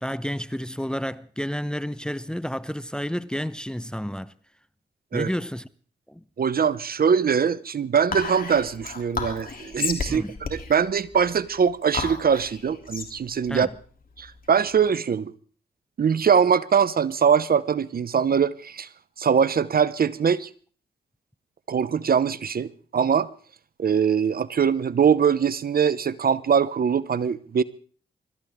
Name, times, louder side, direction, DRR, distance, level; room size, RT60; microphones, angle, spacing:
voice 1, 0.0-4.3 5.1-5.7 6.1-6.2 10.1-10.4 13.5-13.7, equal, 5° left, 0.7 m, -30 dB
voice 2, 6.4-10.2 10.5-13.7 14.2-15.3 16.0-18.9 19.2-20.5 21.7-23.3 23.8-27.6, right 7 dB, 50° right, 0.8 m, -22 dB
Whispering, 8.1-14.8, left 4 dB, 50° left, 3.0 m, -33 dB
25.5 x 13.5 x 3.6 m
supercardioid pair, 40°, 19 cm